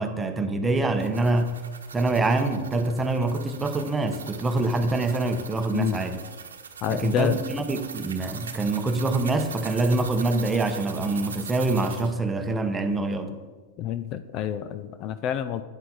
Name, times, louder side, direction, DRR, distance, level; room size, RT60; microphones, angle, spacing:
voice 1, 0.0-1.6 1.9-6.2 6.9-13.4, right 2 dB, 15° right, 7 dB, 1.0 m, -25 dB
sound 1, 0.8-12.1, right 6 dB, 80° right, 1.0 m, -41 dB
voice 2, 6.8-7.4 13.8-15.6, left 10 dB, 40° left, 12 dB, 0.5 m, -28 dB
11.0 x 8.3 x 4.0 m, 1.3 s
hypercardioid pair, 105°, 0 cm